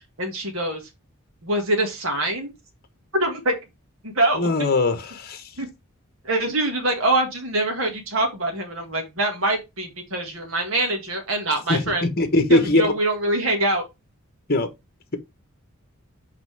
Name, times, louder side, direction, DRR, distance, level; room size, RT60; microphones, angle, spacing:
voice 1, 0.2-0.8 1.4-2.5 3.1-3.5 4.1-4.5 5.6-5.7 6.2-12.0 12.5-13.8, right 1 dB, 70° right, 2.0 m, -24 dB
voice 2, 4.4-5.5 11.7-12.9 14.5-14.7, left 2 dB, 45° left, 1.2 m, -21 dB
5.8 x 4.8 x 3.5 m
head